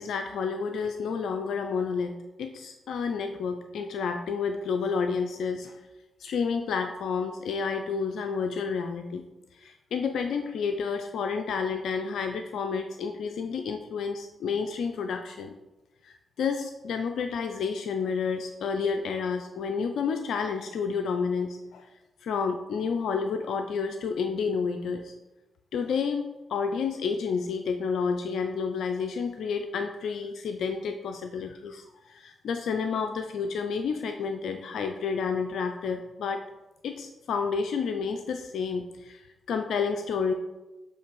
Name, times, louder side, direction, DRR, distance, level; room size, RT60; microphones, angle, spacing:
voice 1, 0.0-2.1 2.4-5.8 6.2-9.2 9.5-15.6 16.0-21.9 22.2-25.1 25.7-36.4 36.8-40.3, left 5 dB, 75° left, 6 dB, 0.4 m, -30 dB
6.4 x 3.2 x 5.9 m, 1.0 s
supercardioid pair, 45°, 0 cm